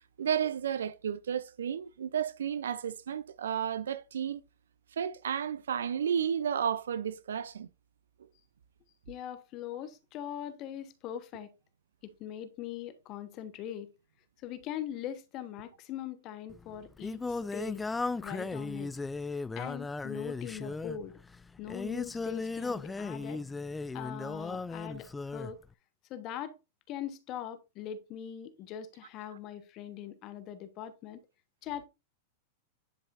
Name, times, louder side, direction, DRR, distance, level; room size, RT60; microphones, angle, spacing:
voice 1, 0.2-4.4 4.9-7.7 8.2-8.3, right 8 dB, 75° right, 0.5 m, -32 dB
voice 2, 9.1-11.5 12.0-13.9 14.4-17.8 18.2-18.9 19.5-21.1 21.6-23.4 23.9-25.6 26.1-26.6 26.9-31.2 31.6-31.8, left 10 dB, 45° left, 1.1 m, -41 dB
Singing, 16.5-25.5, left 3 dB, 10° left, 0.4 m, -36 dB
10.5 x 5.5 x 2.5 m
hypercardioid pair, 100°, 0 cm